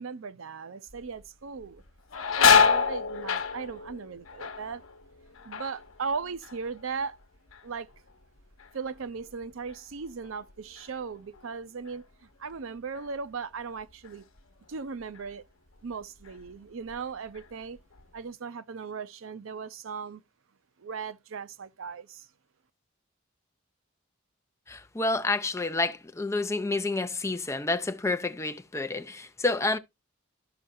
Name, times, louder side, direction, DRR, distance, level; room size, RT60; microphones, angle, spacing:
voice 1, 0.0-1.8 2.3-4.8 5.4-7.2 7.6-7.9 8.7-12.1 12.4-14.3 14.7-15.4 15.8-17.8 18.1-20.2 20.8-22.3, right 5 dB, 70° right, 0.5 m, -37 dB
sound 1, 0.9-1.3 1.6-7.2 7.5-8.1 8.6-11.5 11.9-12.0 12.9-13.1 13.6-14.7 15.1-15.3 15.9-16.6 16.9-18.0, left 6 dB, 75° left, 0.9 m, -28 dB
voice 2, 24.7-29.8, left 3 dB, 15° left, 0.5 m, -29 dB
13.0 x 5.5 x 2.6 m
head